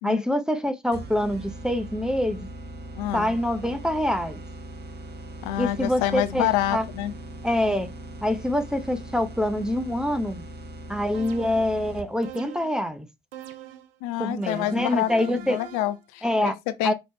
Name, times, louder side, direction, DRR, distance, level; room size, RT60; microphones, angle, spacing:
voice 1, 0.0-2.5 3.1-4.4 5.6-6.8 7.4-7.9 8.2-10.4 10.9-13.1 14.2-15.6 16.2-16.5 16.8-16.9, left 1 dB, ahead, 0.8 m, -25 dB
sound 1, 0.9-12.3, right 1 dB, 35° right, 1.2 m, -40 dB
voice 2, 3.0-3.3 5.4-7.1 14.0-16.9, left 13 dB, 70° left, 0.6 m, -27 dB
sound 2, 11.1-11.8 12.2-12.9 13.3-14.0 14.4-16.0, right 11 dB, 75° right, 0.6 m, -42 dB
5.2 x 3.1 x 2.9 m
figure-of-eight pair, 50°, 29 cm